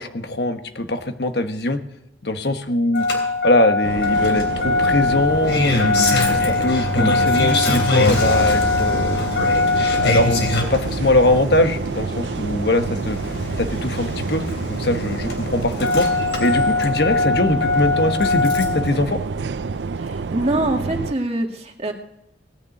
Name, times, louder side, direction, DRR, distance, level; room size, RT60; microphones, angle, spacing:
voice 1, 0.0-1.8 2.2-3.1 3.4-9.3 9.8-13.2 13.6-14.4 14.7-16.1 16.4-19.2, left 2 dB, 65° left, 8 dB, 1.3 m, -22 dB
Engine starting, 2.9-18.9 20.1-20.2, left 3 dB, 80° left, 3.5 m, -22 dB
sound 1, 3.8-21.1, right 4 dB, 85° right, 0.5 m, -28 dB
Bowed string instrument, 5.8-10.7, equal, 15° left, 1.0 m, -32 dB
voice 2, 20.0-21.9, right 2 dB, 35° right, 2 dB, 2.0 m, -24 dB
18.0 x 6.8 x 9.2 m, 0.82 s
head